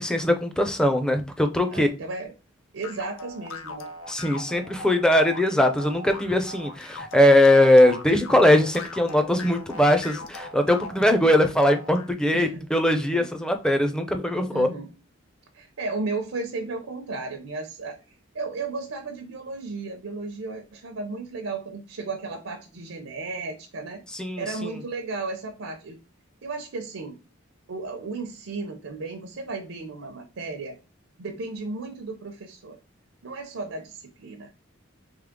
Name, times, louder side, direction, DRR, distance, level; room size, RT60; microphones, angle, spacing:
voice 1, 0.0-1.9 4.1-14.7 24.1-24.7, left 1 dB, 5° left, 6 dB, 0.4 m, -20 dB
voice 2, 1.7-2.3 2.7-3.9 12.3-12.7 13.1-13.3 14.5-14.9 15.5-24.0 24.4-26.0 26.4-27.2 27.7-30.7 31.2-32.8 33.2-34.5, right 3 dB, 80° right, 5 dB, 0.6 m, -34 dB
sound 1, 2.8-12.1, left 1 dB, 90° left, 0.7 m, -38 dB
3.6 x 3.1 x 3.6 m, 0.33 s
head